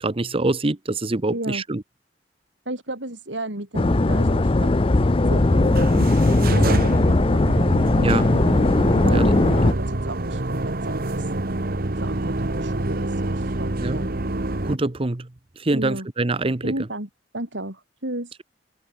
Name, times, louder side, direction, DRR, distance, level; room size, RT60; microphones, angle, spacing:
voice 1, 0.0-1.8 8.0-8.2 8.9-9.3 13.8-14.1 14.6-15.3 15.6-16.7, right 2 dB, 30° right, 0.9 m, -25 dB
voice 2, 1.3-1.6 2.7-4.7 5.2-8.4 9.0-11.3 11.6-14.1 15.7-16.1 16.6-18.4, right 1 dB, 85° right, 7.7 m, -33 dB
sound 1, 3.7-9.7, left 2 dB, 30° left, 0.6 m, -18 dB
Freight Elevator, 5.4-14.8, right 2 dB, 55° right, 1.5 m, -27 dB
head